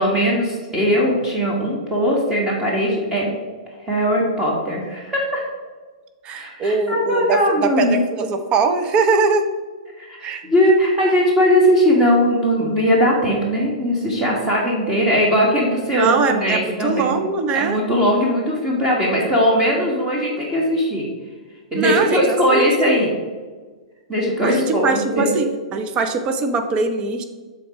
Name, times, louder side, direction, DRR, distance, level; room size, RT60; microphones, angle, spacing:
voice 1, 0.0-3.3 3.9-5.4 6.3-8.0 10.0-17.1 17.5-21.1 21.7-23.1 24.1-25.3, equal, 15° right, -4 dB, 1.6 m, -19 dB
voice 2, 6.2-9.5 10.2-10.4 16.0-17.8 21.7-23.0 24.4-27.2, right 4 dB, 30° right, 7 dB, 0.7 m, -21 dB
7.6 x 4.1 x 4.9 m, 1.4 s
hypercardioid pair, 120°, 4 cm